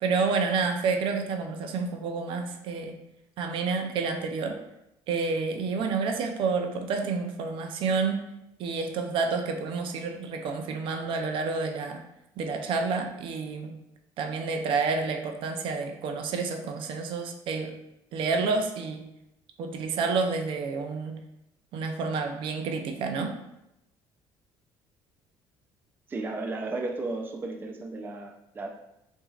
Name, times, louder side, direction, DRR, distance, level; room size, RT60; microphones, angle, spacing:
voice 1, 0.0-3.0 3.4-4.6 5.1-8.2 8.6-12.0 12.4-13.7 14.2-17.7 18.1-19.0 19.6-21.1 21.7-23.3, right 4 dB, 65° right, 4 dB, 0.6 m, -29 dB
voice 2, 26.1-28.7, right 3 dB, 20° right, 2 dB, 0.4 m, -34 dB
5.7 x 2.7 x 2.4 m, 0.84 s
cardioid pair, 120°, 10 cm